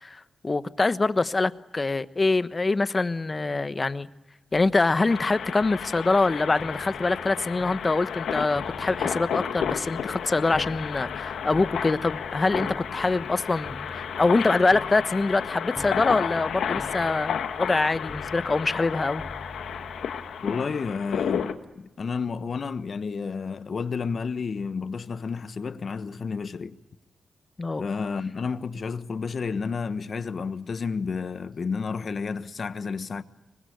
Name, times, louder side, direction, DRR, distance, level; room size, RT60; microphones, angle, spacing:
voice 1, 0.0-4.1 4.5-19.2 27.6-27.8, left 3 dB, 35° left, 1.2 m, -24 dB
sound 1, 5.1-21.5, left 8 dB, 80° left, 1.4 m, -32 dB
sound 2, 5.5-20.3, left 1 dB, ahead, 7.4 m, -45 dB
voice 2, 20.4-26.8 27.8-33.2, left 5 dB, 60° left, 1.2 m, -31 dB
25.5 x 21.0 x 9.5 m
supercardioid pair, 45°, 0 cm